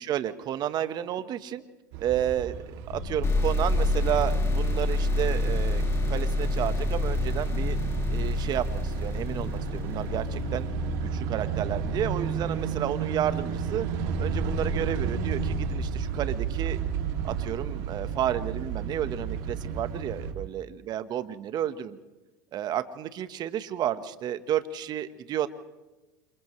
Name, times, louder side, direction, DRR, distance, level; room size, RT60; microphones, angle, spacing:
voice 1, 0.0-1.6 2.0-2.6 2.9-5.8 6.1-7.8 8.1-10.7 11.0-13.9 14.2-16.8 17.2-22.0 22.5-25.5, right 11 dB, 45° right, 11 dB, 1.4 m, -31 dB
sound 1, 1.9-20.3, right 7 dB, 65° right, 2.9 m, -32 dB
sound 2, 2.7-16.1, left 8 dB, 60° left, 3.6 m, -39 dB
sound 3, 3.2-10.8, left 2 dB, 30° left, 3.0 m, -28 dB
28.5 x 28.0 x 3.3 m, 1.1 s
hypercardioid pair, 90°, 10 cm